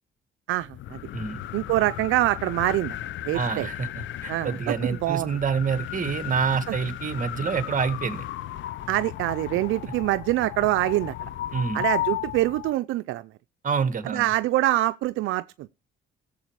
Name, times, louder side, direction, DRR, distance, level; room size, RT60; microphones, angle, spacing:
voice 1, 0.5-1.0 1.5-3.0 3.2-3.7 4.3-5.3 8.9-11.3 11.7-13.3 14.1-15.7, right 16 dB, 85° right, 0.5 m, -25 dB
sound 1, 0.6-12.7, left 13 dB, 75° left, 0.6 m, -35 dB
voice 2, 3.3-8.2 11.5-11.9 13.6-14.3, right 6 dB, 40° right, 1.8 m, -27 dB
16.0 x 7.4 x 4.7 m
cardioid pair, 90°, 20 cm